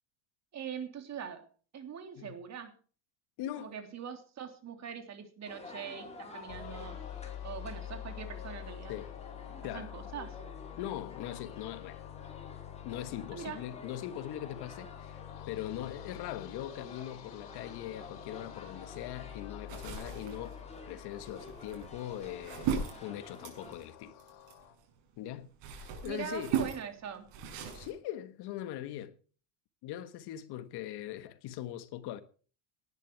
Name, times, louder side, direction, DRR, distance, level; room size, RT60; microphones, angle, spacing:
voice 1, 0.5-1.4 1.7-2.7 3.6-7.0 7.4-9.0 9.6-10.4 13.3-13.6 26.0-27.3, right 7 dB, 35° right, 3.3 m, -42 dB
voice 2, 3.4-3.7 8.9-9.1 9.6-9.9 10.8-12.0 12.8-20.6 20.8-24.1 25.2-26.5 27.7-29.1 29.8-32.2, left 12 dB, 55° left, 1.6 m, -41 dB
sound 1, 5.5-23.8, left 3 dB, 15° left, 4.9 m, -51 dB
sound 2, 6.5-24.8, left 11 dB, 80° left, 3.6 m, -47 dB
sound 3, 19.7-24.9 25.3-27.9, right 7 dB, 65° right, 6.6 m, -38 dB
19.0 x 11.0 x 4.7 m
cardioid pair, 140°, 47 cm